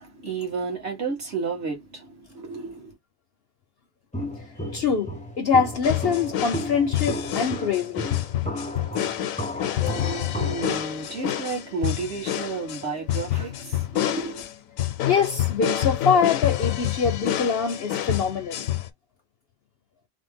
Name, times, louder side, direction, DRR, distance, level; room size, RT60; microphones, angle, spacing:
voice 1, 0.0-3.0 9.8-14.5, right 4 dB, 50° right, 1.6 m, -32 dB
Walk footsteps, 4.1-10.8, equal, 10° left, 0.4 m, -34 dB
voice 2, 4.7-8.1 15.1-18.7, left 6 dB, 60° left, 0.7 m, -24 dB
sound 1, 5.8-18.9, left 12 dB, 80° left, 1.0 m, -28 dB
3.3 x 2.1 x 3.4 m
omnidirectional pair, 1.4 m